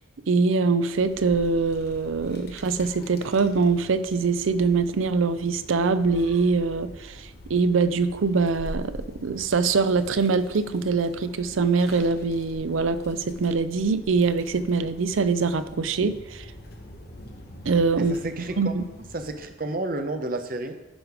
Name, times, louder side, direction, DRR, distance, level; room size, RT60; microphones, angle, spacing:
voice 1, 0.3-16.4 17.7-18.1 18.6-18.8, right 4 dB, 80° right, 13 dB, 0.5 m, -23 dB
sound 1, 0.9-19.4, left 1 dB, 50° left, 1.1 m, -44 dB
voice 2, 17.9-18.7 19.1-20.7, right 2 dB, 45° right, 7 dB, 0.7 m, -31 dB
11.5 x 5.0 x 4.8 m, 1.1 s
head